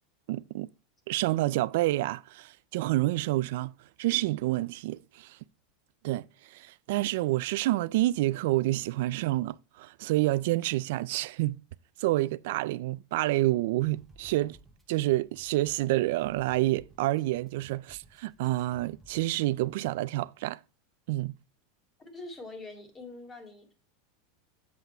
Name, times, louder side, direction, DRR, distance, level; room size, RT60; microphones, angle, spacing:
voice 1, 0.3-0.7 1.1-3.7 4.0-5.4 6.0-11.6 12.0-14.6 14.9-20.6 21.1-21.3, right 17 dB, 70° right, 0.3 m, -28 dB
sound 1, 13.8-19.9, right 1 dB, 5° right, 1.0 m, -58 dB
voice 2, 22.0-23.7, left 2 dB, 20° left, 2.1 m, -44 dB
7.7 x 5.7 x 4.3 m
supercardioid pair, 145°, 0 cm